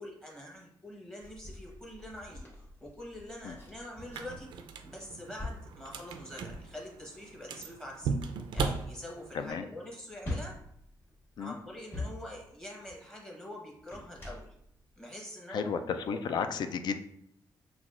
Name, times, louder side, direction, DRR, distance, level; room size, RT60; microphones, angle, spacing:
voice 1, 0.0-4.5 4.8-8.1 8.5-10.5 11.4-14.5 15.0-16.4, left 1 dB, 10° left, -2 dB, 1.0 m, -45 dB
sound 1, 1.2-4.6 5.0-13.1 13.7-15.0 15.6-15.7, left 2 dB, 30° left, 1.3 m, -43 dB
sound 2, 4.0-9.5, right 5 dB, 90° right, 0.4 m, -38 dB
voice 2, 9.3-9.7 11.4-11.6 15.5-17.0, left 6 dB, 65° left, 8 dB, 0.4 m, -33 dB
5.8 x 2.3 x 2.4 m, 0.71 s
cardioid pair, 130°, 8 cm